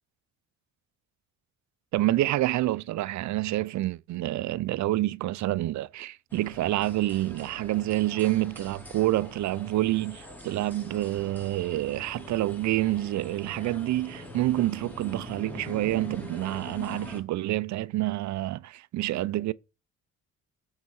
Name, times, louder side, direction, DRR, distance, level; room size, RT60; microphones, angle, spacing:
voice 1, 1.9-19.5, right 16 dB, 70° right, 0.5 m, -28 dB
sound 1, 6.3-17.2, left 1 dB, 5° left, 3.0 m, -44 dB
6.9 x 4.8 x 6.3 m
cardioid pair, 90°, 30 cm